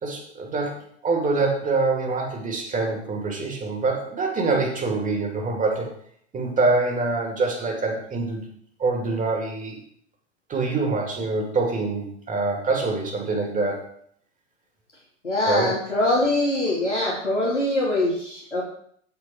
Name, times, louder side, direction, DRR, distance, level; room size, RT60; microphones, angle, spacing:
voice 1, 0.0-5.9 6.3-8.4 8.8-9.8 10.5-13.8 15.5-15.7, right 3 dB, 20° right, 2 dB, 2.4 m, -25 dB
voice 2, 15.2-18.6, left 1 dB, 85° left, -4 dB, 2.8 m, -23 dB
13.5 x 4.6 x 4.4 m, 0.64 s
figure-of-eight pair, 85°, 35 cm